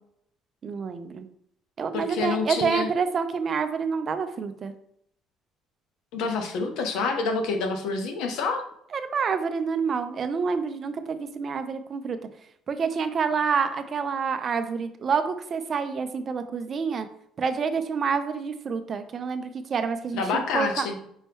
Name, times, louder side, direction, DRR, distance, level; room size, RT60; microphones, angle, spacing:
voice 1, 0.6-1.3 1.8-4.7 8.9-12.2 12.7-17.1 17.4-20.3 20.5-20.9, right 5 dB, 35° right, 10 dB, 0.4 m, -28 dB
voice 2, 1.9-2.9 6.1-8.6 20.1-21.0, left 4 dB, 80° left, 5 dB, 0.8 m, -27 dB
5.3 x 2.8 x 3.5 m, 0.71 s
cardioid pair, 140°, 0 cm